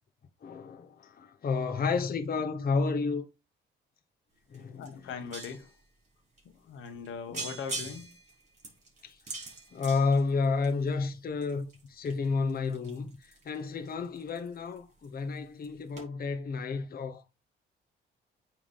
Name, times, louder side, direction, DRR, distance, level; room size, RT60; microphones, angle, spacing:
voice 1, 0.4-3.3 4.5-5.1 7.3-7.5 9.0-9.4 9.7-17.3, left 4 dB, 50° left, 1.1 m, -31 dB
sound 1, 4.5-4.6 4.8-5.8 6.4-6.5 6.9-7.1 7.3-10.9 11.4-14.8 15.0-15.4 15.6-15.7 16.0-16.1, right 3 dB, 35° right, 4.2 m, -42 dB
voice 2, 4.8-5.7 6.4-8.1, left 6 dB, 85° left, 1.6 m, -40 dB
8.7 x 3.6 x 5.7 m
cardioid pair, 90°, 20 cm